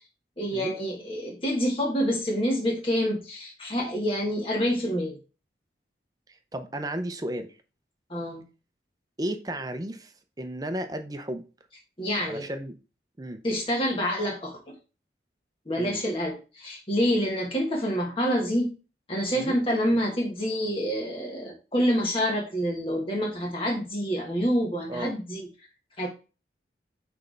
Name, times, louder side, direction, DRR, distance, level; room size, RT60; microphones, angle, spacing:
voice 1, 0.4-5.2 8.1-8.4 12.0-12.5 13.4-14.6 15.7-18.7 19.1-25.5 26.0-26.1, equal, 30° left, 1.3 m, -27 dB
voice 2, 6.3-7.6 9.2-10.1 10.4-11.4 12.2-12.8 13.2-13.4 15.8-16.0 19.3-19.6 24.9-25.1, right 1 dB, 20° right, 0.5 m, -34 dB
6.1 x 3.3 x 5.0 m
head